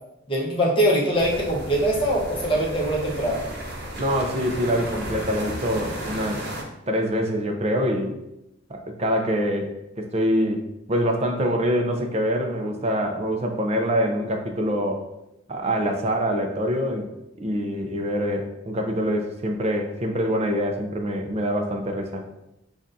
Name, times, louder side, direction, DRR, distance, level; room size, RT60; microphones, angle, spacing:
voice 1, 0.3-3.4, right 1 dB, 25° left, -5 dB, 1.1 m, -22 dB
sound 1, 1.1-6.6, right 1 dB, 55° right, 1.0 m, -34 dB
voice 2, 4.0-6.4 6.9-8.2 8.7-10.6 10.9-15.1 15.5-17.0 17.4-22.2, equal, 30° right, 4 dB, 0.6 m, -25 dB
7.3 x 2.5 x 2.7 m, 0.88 s
head